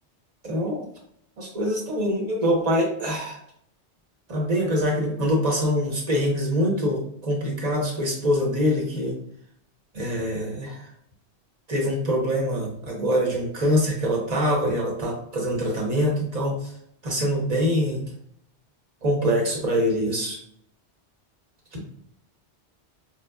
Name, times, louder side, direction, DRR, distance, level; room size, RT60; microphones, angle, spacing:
voice 1, 0.4-0.8 1.4-3.4 4.3-9.2 9.9-10.9 11.7-16.7 17.0-18.0 19.0-20.4 21.7-21.8, equal, 40° right, -2 dB, 1.0 m, -24 dB
4.9 x 2.1 x 2.2 m, 0.71 s
omnidirectional pair, 1.1 m